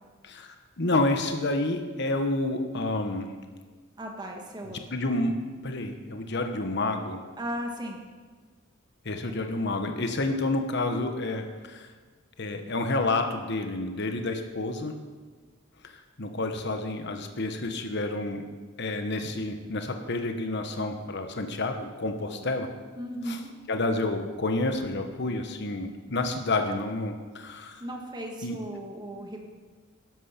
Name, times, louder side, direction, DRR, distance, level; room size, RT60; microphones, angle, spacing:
voice 1, 0.2-3.3 4.6-5.3 5.6-7.2 9.0-11.9 12.4-14.9 16.2-18.4 18.8-22.7 23.3-23.4 23.7-27.8 28.4-28.6, left 2 dB, 55° left, 6 dB, 1.2 m, -29 dB
voice 2, 4.0-4.8 7.4-8.0 23.0-23.5 27.8-29.4, equal, 20° right, 1 dB, 1.6 m, -36 dB
12.5 x 11.0 x 5.9 m, 1.4 s
head